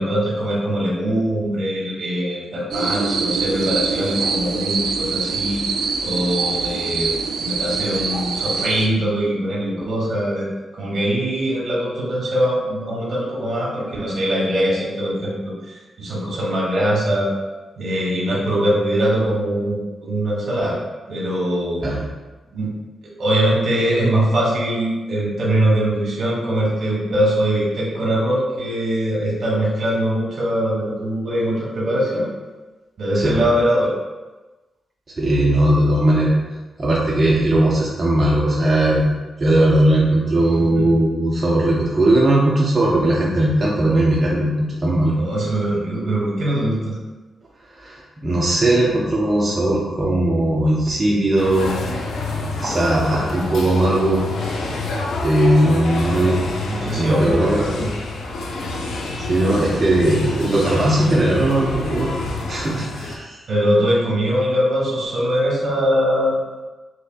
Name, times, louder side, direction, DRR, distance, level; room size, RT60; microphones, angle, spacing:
voice 1, 0.0-5.6 6.0-7.1 7.4-10.5 10.7-17.3 17.8-20.8 21.1-21.8 22.5-22.7 23.2-32.3 33.0-33.9 40.4-40.9 45.1-47.0 56.7-57.9 63.5-66.4, equal, 65° right, -4 dB, 1.3 m, -22 dB
sound 1, 2.7-8.9, right 5 dB, 85° right, 0.3 m, -24 dB
voice 2, 35.2-36.3 36.8-39.1 39.4-45.1 47.8-51.7 52.3-54.2 55.2-56.4 57.0-57.8 59.3-62.1 62.5-63.4, right 1 dB, 35° right, -5 dB, 0.6 m, -18 dB
sound 2, 51.4-63.1, left 3 dB, 90° left, 0.5 m, -28 dB
4.1 x 3.2 x 2.3 m, 1.2 s
cardioid pair, 90°, 0 cm